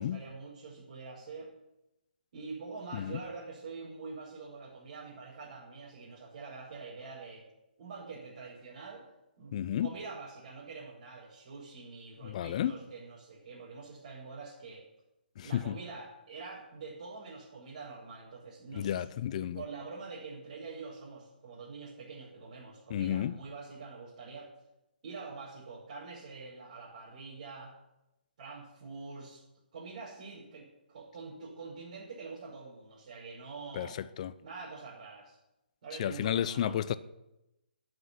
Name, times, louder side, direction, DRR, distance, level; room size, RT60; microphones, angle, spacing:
voice 1, 0.0-1.5 2.3-7.5 7.8-9.0 9.4-9.6 9.8-14.9 15.4-19.0 19.5-24.5 25.0-27.7 28.4-29.4 29.7-34.0 34.4-35.4 35.8-36.8, right 4 dB, 50° right, 5.7 m, -45 dB
voice 2, 9.5-9.9 12.2-12.7 15.4-15.8 18.7-19.6 22.9-23.4 33.7-34.3 36.0-36.9, left 10 dB, 40° left, 0.7 m, -32 dB
11.0 x 9.8 x 9.9 m
figure-of-eight pair, 140°, 5 cm